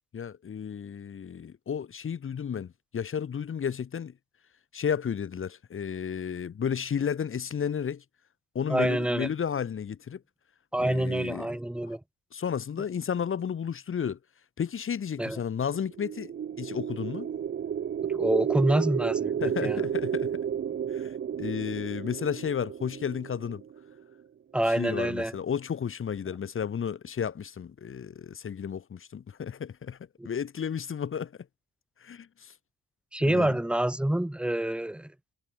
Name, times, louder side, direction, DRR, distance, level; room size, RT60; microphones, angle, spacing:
voice 1, 0.1-4.1 4.7-8.0 8.5-10.2 10.8-11.5 12.3-14.2 14.6-17.3 19.4-20.4 20.9-23.6 24.7-30.0 30.2-31.3 32.0-32.5 33.2-33.6, left 7 dB, 45° left, 1.6 m, -32 dB
voice 2, 8.7-9.3 10.7-12.0 15.2-15.4 18.1-19.8 24.5-25.4 30.2-30.3 33.1-35.1, right 1 dB, 5° right, 0.8 m, -27 dB
sound 1, 15.9-24.0, right 8 dB, 40° right, 0.8 m, -32 dB
cardioid pair, 90°, 30 cm